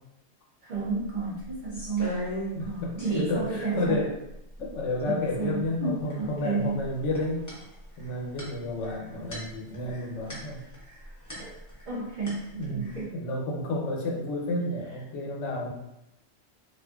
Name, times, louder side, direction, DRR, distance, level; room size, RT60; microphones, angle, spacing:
voice 1, 0.6-2.2 2.6-4.0 5.1-6.8 11.4-11.5 11.9-13.1, right 4 dB, 60° right, -6 dB, 0.5 m, -32 dB
sound 1, 0.8-0.9 1.2-2.7 3.0-3.4 4.0-4.1 4.3-5.0 6.1-6.5 6.8-12.0 12.3-13.0, left 1 dB, 25° left, 0.4 m, -37 dB
voice 2, 2.5-4.1 4.6-7.4 8.0-10.6 12.5-12.9 13.1-15.7, left 2 dB, 85° left, -1 dB, 1.0 m, -31 dB
2.5 x 2.4 x 2.3 m, 0.85 s
omnidirectional pair, 1.2 m